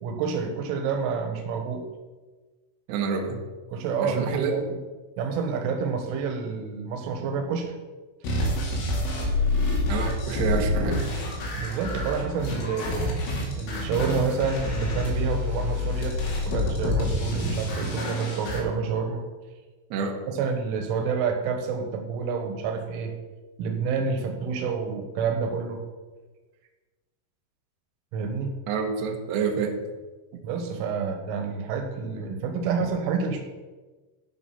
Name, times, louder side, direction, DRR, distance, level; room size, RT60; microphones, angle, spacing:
voice 1, 0.0-1.8 3.7-4.6 5.2-7.7 11.6-13.1 13.6-16.2 16.5-19.2 20.3-23.1 23.6-25.8 28.1-28.5 30.4-33.4, right 5 dB, 90° right, 5 dB, 3.7 m, -28 dB
voice 2, 2.9-3.4 4.0-4.6 9.9-11.0 19.9-20.2 28.7-29.8, right 6 dB, 70° right, 3 dB, 3.2 m, -28 dB
sound 1, 8.2-18.6, left 2 dB, 85° left, 5.1 m, -27 dB
16.0 x 5.8 x 5.8 m, 1.3 s
omnidirectional pair, 5.4 m